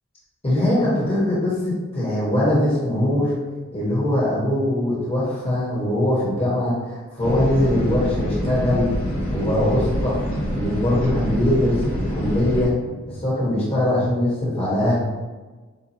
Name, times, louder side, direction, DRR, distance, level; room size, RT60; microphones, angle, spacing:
voice 1, 0.4-3.3 3.7-8.9 9.3-10.1 10.5-11.8 12.1-12.7 13.0-15.0, left 1 dB, 25° left, -7 dB, 1.2 m, -21 dB
sound 1, 7.2-12.7, equal, 75° left, 1.3 m, -26 dB
7.0 x 2.6 x 2.8 m, 1.3 s
head